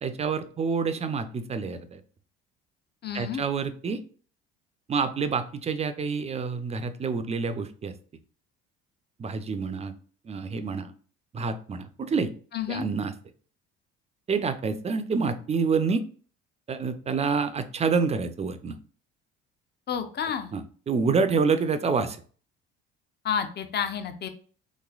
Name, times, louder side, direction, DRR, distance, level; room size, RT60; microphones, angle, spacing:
voice 1, 0.0-2.0 3.1-4.0 4.9-7.9 9.2-9.9 10.2-10.9 11.3-12.3 12.7-13.1 14.3-16.0 16.7-18.7 20.5-22.2, right 5 dB, 20° right, 10 dB, 0.4 m, -27 dB
voice 2, 3.0-3.4 12.5-12.9 19.9-20.5 23.2-24.3, left 7 dB, 35° left, 9 dB, 0.6 m, -30 dB
3.2 x 3.1 x 2.4 m, 0.42 s
hypercardioid pair, 70°, 30 cm